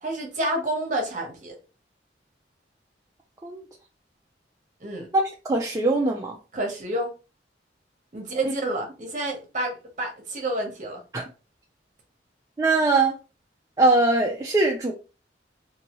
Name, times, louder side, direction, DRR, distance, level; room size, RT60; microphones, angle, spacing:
voice 1, 0.0-1.6 4.8-5.1 6.5-7.1 8.1-11.0, right 1 dB, 45° right, 2 dB, 0.9 m, -29 dB
voice 2, 5.1-6.4 11.1-11.2 12.6-13.1 13.8-14.9, right 2 dB, 20° right, 0 dB, 0.3 m, -21 dB
2.7 x 2.6 x 3.0 m, 0.32 s
head